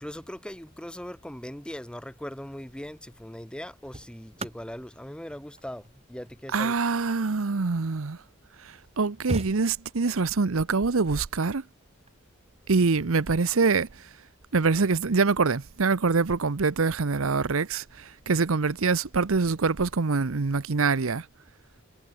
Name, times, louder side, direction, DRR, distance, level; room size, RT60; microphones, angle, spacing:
voice 1, 0.0-6.8, equal, 5° left, 1.1 m, -40 dB
sound 1, 3.5-8.1 8.6-8.7 8.9-10.2 11.9-12.1, right 1 dB, 30° right, 3.8 m, -40 dB
voice 2, 6.5-8.2 8.6-11.6 12.7-13.9 14.5-21.3, right 4 dB, 80° right, 0.8 m, -25 dB
head